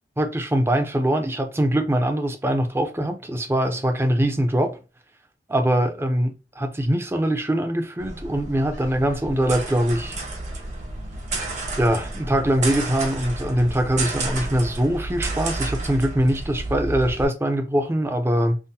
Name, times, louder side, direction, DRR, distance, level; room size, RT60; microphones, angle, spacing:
voice 1, 0.2-4.8 5.5-10.2 11.8-18.6, right 1 dB, 15° right, 0.5 m, -22 dB
sound 1, 8.0-17.2, right 2 dB, 40° right, 0.9 m, -31 dB
5.6 x 2.0 x 2.7 m
head